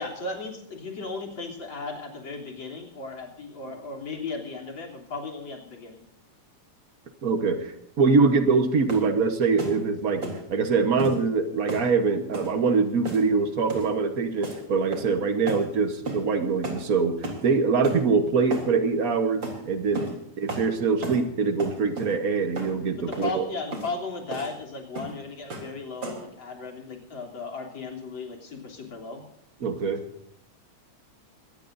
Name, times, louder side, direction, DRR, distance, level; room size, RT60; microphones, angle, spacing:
voice 1, 0.0-6.0 22.9-29.2, left 3 dB, 40° left, 0 dB, 3.9 m, -36 dB
voice 2, 7.2-10.2 10.5-20.1 20.4-23.4 29.6-30.0, right 4 dB, 75° right, 6 dB, 0.8 m, -24 dB
sound 1, 8.9-9.1 9.6-9.8 10.2-10.4 11.0-11.2 11.7-11.9 12.3-12.5 13.0-13.4 13.7-13.9 14.4-14.6 14.9-15.2 15.5-15.7 16.1-16.2 16.6-16.8 17.2-17.5 17.8-18.0 18.5-18.7 19.4-19.6 19.9-20.2 20.5-20.7 21.0-21.2 21.6-22.1 22.6-22.7 23.1-23.3 23.7-23.9 24.3-24.5 25.0-25.2 25.5-25.7 26.0-26.3, right 2 dB, 35° right, 4.3 m, -34 dB
22.5 x 18.5 x 2.7 m, 0.78 s
omnidirectional pair, 3.5 m